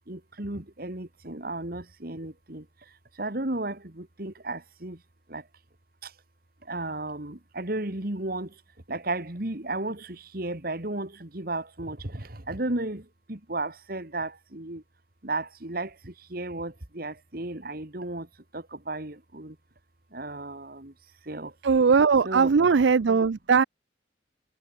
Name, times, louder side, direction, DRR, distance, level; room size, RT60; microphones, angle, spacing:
voice 1, 0.1-2.7 3.2-5.0 5.3-5.4 6.0-6.1 6.7-8.5 8.9-14.8 15.2-18.3 18.5-19.6 20.1-20.9 21.3-21.5 22.2-22.5, right 2 dB, 50° right, 2.1 m, -34 dB
voice 2, 21.6-23.6, right 5 dB, 65° right, 0.5 m, -20 dB
head